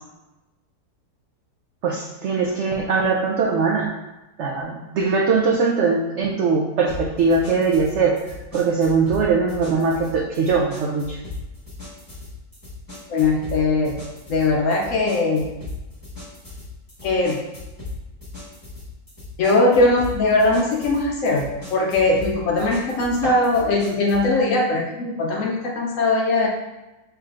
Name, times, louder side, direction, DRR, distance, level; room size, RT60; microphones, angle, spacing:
voice 1, 1.8-3.9 4.4-8.1 8.5-11.2, right 4 dB, 75° right, -1 dB, 0.6 m, -21 dB
sound 1, 6.9-24.3, left 2 dB, 15° left, 1.2 m, -38 dB
voice 2, 13.1-14.0 14.3-15.5 17.0-17.4 19.4-21.4 21.7-26.5, left 2 dB, 70° left, 0 dB, 0.8 m, -20 dB
5.8 x 3.3 x 2.4 m, 1.0 s
omnidirectional pair, 1.7 m